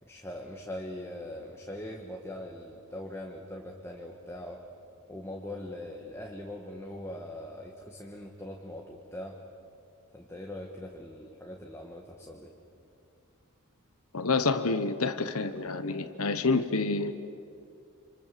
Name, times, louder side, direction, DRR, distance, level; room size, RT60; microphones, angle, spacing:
voice 1, 0.0-4.6 5.1-9.4 10.1-12.5, left 1 dB, 10° left, 0 dB, 1.5 m, -41 dB
voice 2, 14.1-17.1, left 3 dB, 75° left, 9 dB, 1.2 m, -28 dB
26.5 x 26.5 x 7.6 m, 2.5 s
head